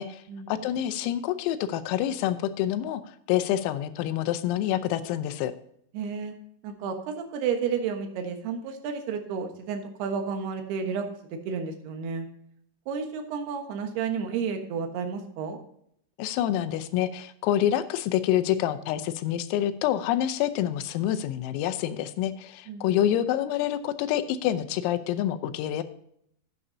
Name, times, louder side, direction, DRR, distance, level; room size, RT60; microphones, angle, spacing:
voice 1, 0.5-3.0 3.3-5.5 16.2-25.8, left 11 dB, 90° left, 11 dB, 3.5 m, -27 dB
voice 2, 5.9-6.3 6.6-11.1 11.5-12.3 12.9-15.6 22.7-22.9, right 6 dB, 65° right, 5 dB, 2.8 m, -31 dB
12.0 x 10.0 x 2.7 m, 0.70 s
omnidirectional pair, 5.9 m